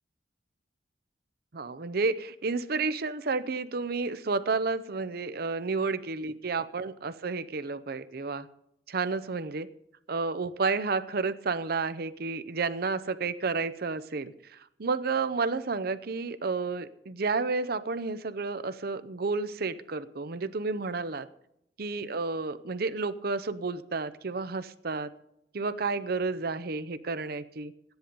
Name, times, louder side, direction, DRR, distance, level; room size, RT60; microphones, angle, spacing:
voice 1, 1.5-8.5 8.9-9.7 10.1-21.3 21.8-25.1 25.5-27.7, right 4 dB, 60° right, 12 dB, 0.7 m, -31 dB
13.0 x 10.5 x 5.3 m, 0.77 s
head